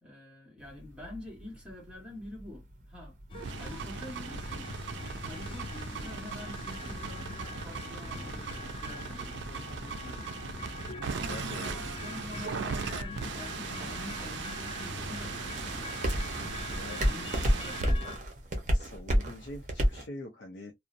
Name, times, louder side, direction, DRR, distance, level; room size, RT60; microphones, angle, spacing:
voice 1, 0.0-3.2 3.6-10.3 10.7-15.7 16.5-18.2, left 1 dB, 5° right, 1.1 m, -47 dB
sound 1, 0.6-20.1, equal, 40° right, 0.7 m, -36 dB
sound 2, 3.3-18.2, left 3 dB, 30° left, 0.3 m, -42 dB
sound 3, 3.3-17.9, right 6 dB, 80° right, 0.4 m, -39 dB
voice 2, 11.0-11.8 16.7-17.0 18.7-20.7, left 1 dB, 80° left, 0.6 m, -44 dB
2.6 x 2.0 x 2.4 m
head